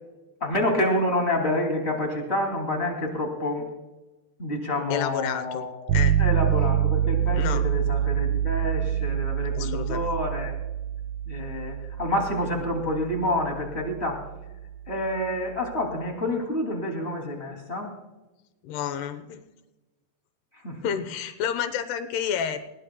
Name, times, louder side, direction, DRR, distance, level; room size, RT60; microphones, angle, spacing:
voice 1, 0.4-3.6 4.4-5.9 6.2-10.5 11.3-14.2 14.9-17.9 20.6-20.8, left 1 dB, 20° left, 1 dB, 2.2 m, -28 dB
voice 2, 4.9-5.7 5.9-6.2 7.3-7.6 9.5-10.1 18.6-19.4 20.8-22.6, left 8 dB, 80° left, 9 dB, 2.9 m, -30 dB
sound 1, 5.9-15.8, right 9 dB, 85° right, 3.8 m, -26 dB
20.0 x 18.5 x 2.3 m, 1.1 s
omnidirectional pair, 4.7 m